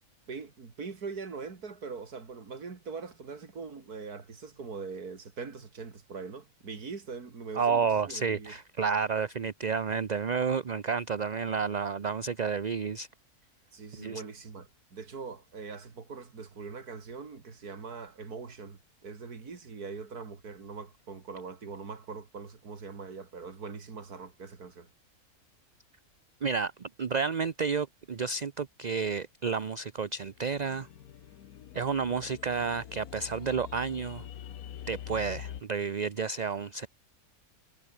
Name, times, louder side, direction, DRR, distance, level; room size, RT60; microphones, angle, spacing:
voice 1, 0.3-8.5 13.7-24.9, right 5 dB, 85° right, 3.1 m, -42 dB
voice 2, 7.5-13.1 14.0-14.2 26.4-30.9 31.7-34.2 34.9-36.9, right 5 dB, 35° right, 0.7 m, -31 dB
sound 1, 30.3-35.6, left 10 dB, 80° left, 1.4 m, -45 dB
omnidirectional pair, 1.6 m